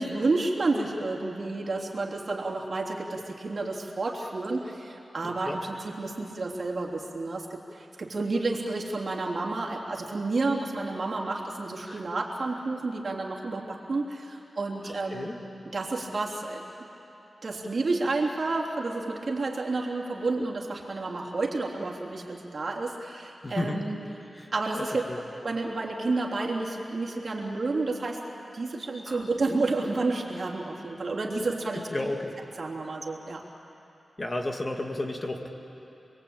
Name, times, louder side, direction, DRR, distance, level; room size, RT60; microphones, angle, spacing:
voice 1, 0.0-15.3 15.7-16.9 17.4-24.0 24.5-25.0 25.4-28.2 28.5-31.9 32.6-33.4, right 3 dB, 50° right, -2 dB, 3.2 m, -30 dB
voice 2, 5.2-5.6 11.8-12.0 14.8-15.4 23.4-23.9 24.3-25.2 29.1-29.3 31.7-32.3 34.2-35.5, left 2 dB, 30° left, 2 dB, 2.1 m, -33 dB
27.5 x 22.0 x 8.9 m, 3.0 s
wide cardioid pair, 110°, 0 cm